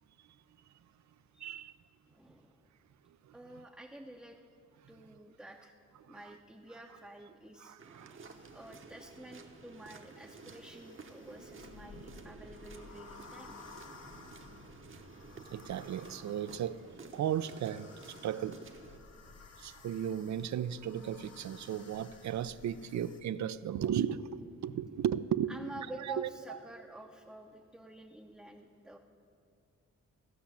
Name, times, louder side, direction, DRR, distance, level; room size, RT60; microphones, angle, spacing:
voice 1, 1.4-1.7 3.3-3.4 6.0-6.2 7.6-8.2 15.5-16.8 17.1-18.6 19.6-26.6, right 9 dB, 70° right, 15 dB, 0.4 m, -35 dB
voice 2, 2.1-2.7 3.3-4.4 4.9-5.8 6.1-7.8 8.5-13.7 25.5-29.0, right 1 dB, ahead, 1 dB, 0.6 m, -50 dB
sound 1, 7.8-19.0, right 4 dB, 45° right, 0.9 m, -53 dB
sound 2, 8.3-23.2, left 4 dB, 60° left, 1.2 m, -56 dB
15.0 x 5.7 x 7.4 m, 2.6 s
cardioid pair, 90°, 29 cm